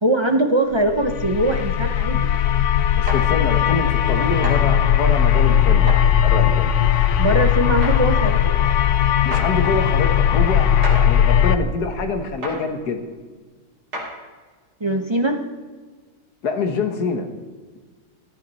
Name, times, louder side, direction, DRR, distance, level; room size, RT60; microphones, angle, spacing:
voice 1, 0.0-2.4 7.2-8.6 14.8-15.4, right 1 dB, 25° right, 5 dB, 0.6 m, -21 dB
sound 1, 0.9-11.6, left 9 dB, 60° left, 0.9 m, -18 dB
voice 2, 2.9-5.9 6.2-6.7 9.2-13.0 16.4-17.3, left 4 dB, 80° left, 6 dB, 1.8 m, -25 dB
sound 2, 3.1-3.2 4.4-4.6 5.9-6.0 7.8-8.0 9.3-9.5 10.8-11.0 12.4-12.6 13.9-14.1, equal, 80° right, 3.5 m, -29 dB
16.5 x 12.5 x 4.1 m, 1.5 s
omnidirectional pair, 1.7 m